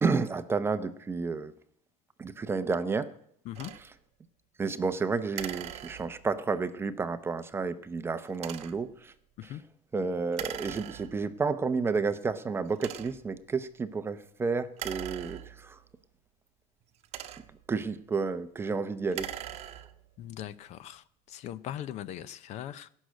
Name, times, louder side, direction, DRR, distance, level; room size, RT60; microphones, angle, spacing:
voice 1, 0.0-1.5 2.2-3.1 4.6-9.1 9.4-9.5 9.9-15.8 17.7-19.3, right 4 dB, 15° right, 11 dB, 0.6 m, -31 dB
sound 1, 3.5-3.8 5.3-6.4 8.3-8.9 10.3-11.3 12.0-12.1 12.7-13.4 14.7-15.8 16.8-17.7 19.0-20.1, right 12 dB, 40° right, 1.0 m, -41 dB
voice 2, 20.2-22.9, left 11 dB, 45° left, 18 dB, 0.5 m, -40 dB
16.5 x 6.4 x 9.4 m, 0.66 s
cardioid pair, 160°, 17 cm